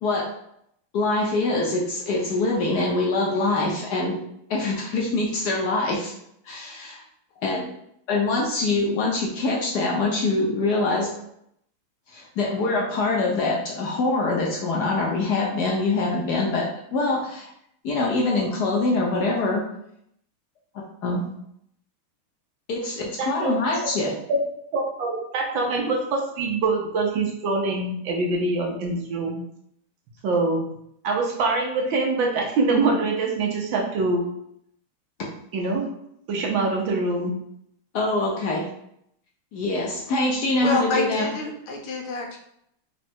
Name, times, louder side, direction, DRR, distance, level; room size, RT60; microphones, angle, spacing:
voice 1, 0.9-4.2 4.5-6.1 6.5-7.0 7.4-7.7 8.1-11.2 12.1-17.5 17.8-19.6 21.0-21.3 22.7-24.1 37.9-38.7 39.5-41.3, left 2 dB, 65° left, -2 dB, 1.1 m, -24 dB
voice 2, 23.2-23.6 24.3-24.4 24.7-29.4 30.2-30.7 31.0-34.3 35.5-35.9 36.3-37.3, right 3 dB, 70° right, 0 dB, 1.5 m, -24 dB
voice 3, 40.6-42.4, left 2 dB, 85° left, 1 dB, 1.7 m, -27 dB
4.2 x 2.4 x 4.3 m, 0.73 s
omnidirectional pair, 2.3 m